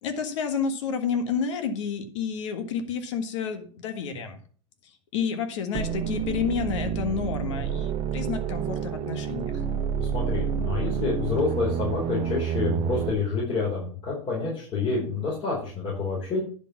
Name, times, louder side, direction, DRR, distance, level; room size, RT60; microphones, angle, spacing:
voice 1, 0.0-4.4 4.8-9.6, left 6 dB, 85° left, 7 dB, 1.7 m, -30 dB
sound 1, 5.7-13.1, right 8 dB, 35° right, 0.9 m, -29 dB
voice 2, 10.0-16.4, left 4 dB, 35° left, -4 dB, 4.4 m, -28 dB
10.5 x 5.2 x 5.9 m, 0.43 s
supercardioid pair, 130°, 15 cm